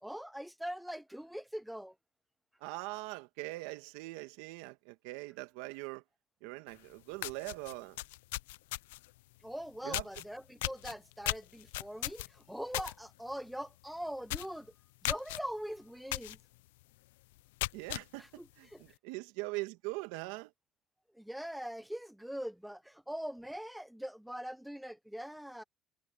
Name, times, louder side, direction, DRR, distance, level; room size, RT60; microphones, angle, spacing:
voice 1, 0.0-1.9 9.4-14.7 15.0-16.4 18.2-18.8 21.1-25.6, equal, ahead, 0.7 m, -42 dB
voice 2, 2.6-6.0 6.4-8.0 9.8-10.0 17.7-18.2 18.6-20.5, right 22 dB, 80° right, 1.6 m, -42 dB
sound 1, 6.8-6.9 7.2-9.1 9.9-10.2 10.6-12.9 13.3-13.5 13.8-13.9 14.3-14.6 15.0-15.4 16.1-16.4 16.8-16.9 17.4-18.0, left 19 dB, 90° left, 0.4 m, -36 dB
supercardioid pair, 80°, 0 cm